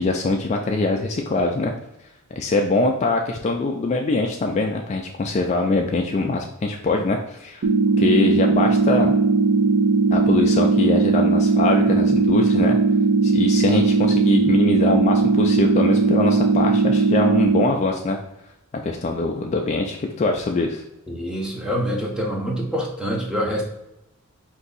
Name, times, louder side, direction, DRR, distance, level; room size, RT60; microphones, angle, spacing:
voice 1, 0.0-1.7 2.3-7.7 8.0-9.1 10.1-12.8 13.2-18.2 18.8-20.8, left 3 dB, 30° left, 2 dB, 0.3 m, -23 dB
sound 1, 7.6-17.6, right 4 dB, 70° right, 0.4 m, -18 dB
voice 2, 21.1-23.6, equal, 5° right, -1 dB, 0.7 m, -25 dB
4.5 x 2.6 x 3.9 m, 0.87 s
head